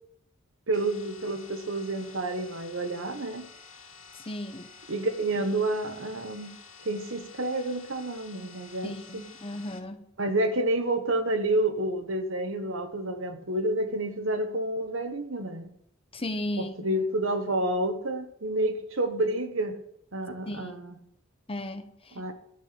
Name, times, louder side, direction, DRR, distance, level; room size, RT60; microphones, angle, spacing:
sound 1, 0.7-9.8, left 5 dB, 85° left, 2.4 m, -50 dB
voice 1, 0.7-3.5 4.9-6.5 6.8-9.3 10.2-15.7 16.6-19.7 20.1-20.9 22.1-22.3, right 1 dB, 70° right, 7 dB, 1.4 m, -29 dB
voice 2, 4.1-4.7 8.8-10.0 16.1-16.7 20.5-20.8 21.5-22.3, left 1 dB, 30° left, 9 dB, 1.0 m, -35 dB
12.0 x 6.0 x 8.7 m, 0.73 s
head